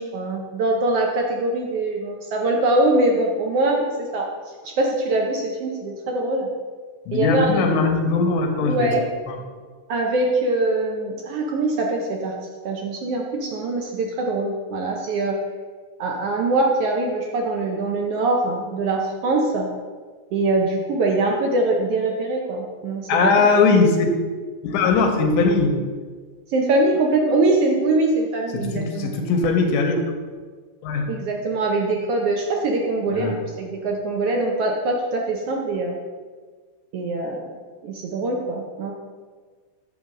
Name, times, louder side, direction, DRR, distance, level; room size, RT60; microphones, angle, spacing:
voice 1, 0.0-4.3 4.6-6.5 7.1-7.7 8.6-9.0 9.9-12.3 12.6-15.4 16.0-19.7 20.3-23.3 26.5-29.1 31.1-36.0 36.9-37.5 37.8-38.9, right 2 dB, 75° right, 0 dB, 1.4 m, -23 dB
voice 2, 7.1-8.9 9.3-9.4 23.1-24.1 24.6-25.7 28.5-30.0 30.8-31.1 33.1-33.4, left 4 dB, 90° left, 4 dB, 2.3 m, -20 dB
8.1 x 3.3 x 6.2 m, 1.5 s
omnidirectional pair, 3.5 m